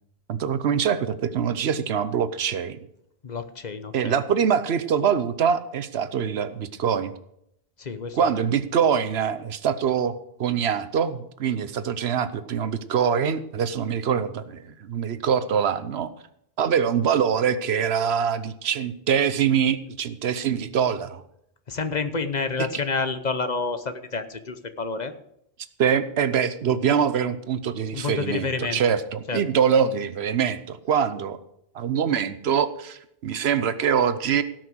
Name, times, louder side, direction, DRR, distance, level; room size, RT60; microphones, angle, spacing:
voice 1, 0.3-2.8 3.9-7.1 8.1-16.1 16.6-21.2 22.6-22.7 25.8-31.4 31.7-34.4, right 7 dB, 80° right, 13 dB, 1.0 m, -24 dB
voice 2, 3.2-4.2 7.8-8.3 21.7-25.1 27.9-28.8 29.3-29.4, left 4 dB, 45° left, 10 dB, 1.0 m, -29 dB
17.0 x 6.2 x 6.3 m, 0.75 s
omnidirectional pair, 1.1 m